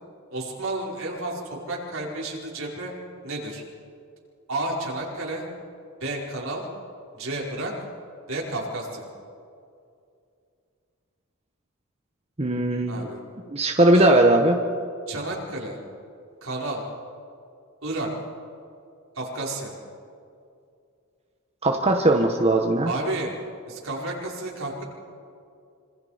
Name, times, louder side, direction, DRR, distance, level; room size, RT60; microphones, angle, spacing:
voice 1, 0.3-2.9 3.2-3.6 4.5-5.5 6.0-6.6 7.1-7.7 8.3-9.1 12.9-13.2 13.9-14.1 15.1-15.8 16.4-16.8 17.8-18.1 19.2-19.7 22.8-23.3 23.7-24.8, right 2 dB, 70° right, -2 dB, 5.3 m, -31 dB
voice 2, 12.4-13.1 13.5-14.6 21.6-22.9, right 1 dB, 30° right, 3 dB, 1.3 m, -19 dB
26.5 x 26.0 x 5.2 m, 2.4 s
head